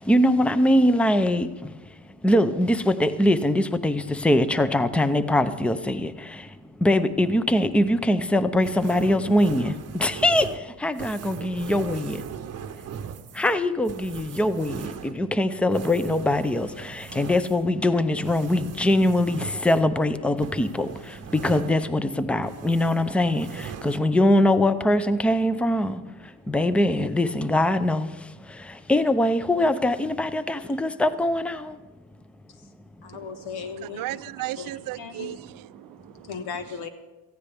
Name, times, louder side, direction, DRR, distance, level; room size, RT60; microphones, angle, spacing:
voice 1, 0.0-1.7 2.2-6.5 6.8-12.2 13.3-26.0 26.5-28.1 28.5-31.8, left 1 dB, 5° left, 0.6 m, -22 dB
sound 1, 8.6-22.1 22.4-24.0, right 8 dB, 40° right, 0.8 m, -39 dB
voice 2, 33.0-34.2 34.5-35.3 36.2-36.9, left 6 dB, 85° left, 1.6 m, -37 dB
voice 3, 33.8-36.3, right 15 dB, 60° right, 0.5 m, -35 dB
17.5 x 14.5 x 3.4 m
cardioid pair, 110°, 38 cm